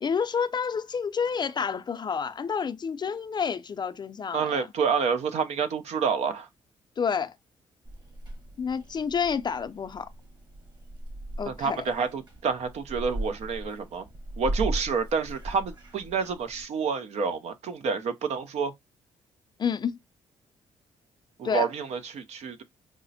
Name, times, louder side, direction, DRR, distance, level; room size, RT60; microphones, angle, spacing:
voice 1, 0.0-4.7 7.0-7.3 8.6-10.1 11.4-11.8 19.6-20.0 21.4-21.7, left 6 dB, 40° left, 0.4 m, -29 dB
voice 2, 4.3-6.5 11.5-14.0 14.4-18.7 21.4-22.6, right 5 dB, 65° right, 0.6 m, -28 dB
Purr / Meow, 7.8-16.6, right 1 dB, 35° right, 1.4 m, -38 dB
4.8 x 2.1 x 2.7 m
supercardioid pair, 65°, 12 cm